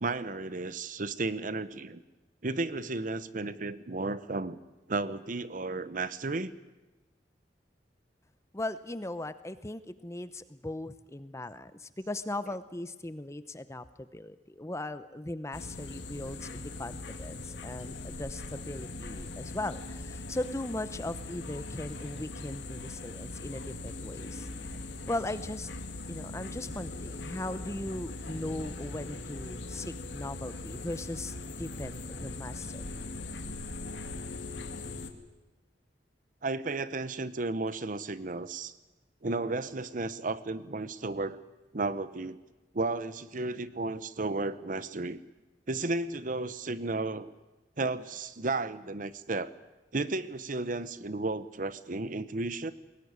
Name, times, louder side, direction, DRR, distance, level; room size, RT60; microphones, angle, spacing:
voice 1, 0.0-2.0 2.4-4.6 4.9-6.5 36.4-38.7 39.2-41.4 41.7-42.4 42.7-45.2 45.7-47.3 47.8-49.5 49.9-52.7, right 3 dB, 50° right, 15 dB, 0.9 m, -33 dB
voice 2, 8.5-24.5 25.1-25.7 26.1-33.0, left 1 dB, 15° left, 13 dB, 0.8 m, -38 dB
sound 1, 15.5-35.1, left 2 dB, 85° left, 2.3 m, -40 dB
21.5 x 18.5 x 9.6 m, 1.1 s
head